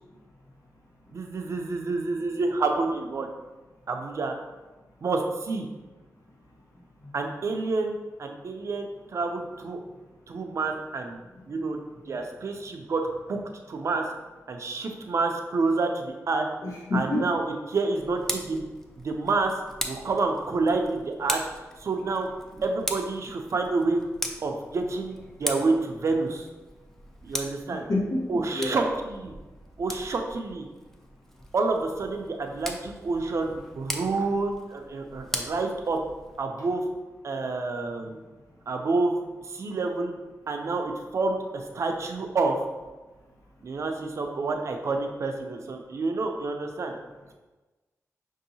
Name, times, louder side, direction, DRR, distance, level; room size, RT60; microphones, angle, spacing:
voice 1, 1.1-3.3 3.9-4.4 5.0-5.7 7.1-9.8 10.3-11.2 11.5-11.8 12.1-13.4 13.7-14.1 14.5-16.5 16.9-17.4 17.7-18.6 19.0-19.5 19.9-22.3 22.6-24.0 24.4-26.5 27.2-27.8 28.3-29.3 29.8-30.6 31.5-36.0 36.4-36.8 37.2-38.2 38.7-39.2 39.5-40.1 40.5-42.6 43.6-47.0, right 3 dB, 60° right, 3 dB, 0.5 m, -28 dB
voice 2, 16.6-17.3 22.5-22.6 27.9-28.8, left 2 dB, 80° left, -5 dB, 1.1 m, -28 dB
Tick, 18.0-36.4, equal, 5° left, 0.4 m, -39 dB
5.2 x 2.7 x 2.7 m, 1.2 s
wide cardioid pair, 105°, 6 cm